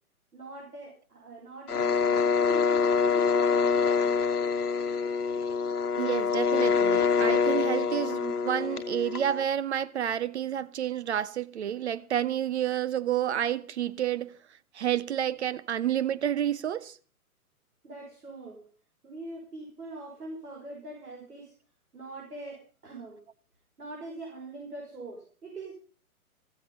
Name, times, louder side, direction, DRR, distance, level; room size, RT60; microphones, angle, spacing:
voice 1, 0.3-4.2 17.8-18.7 19.0-21.5 21.9-23.2 23.8-25.7, right 2 dB, 90° right, 5.5 m, -42 dB
sound 1, 1.7-9.4, left 5 dB, 85° left, 1.2 m, -25 dB
voice 2, 6.0-14.4 14.7-17.0, right 10 dB, 50° right, 0.6 m, -29 dB
15.0 x 13.0 x 5.4 m
hypercardioid pair, 140°, 44 cm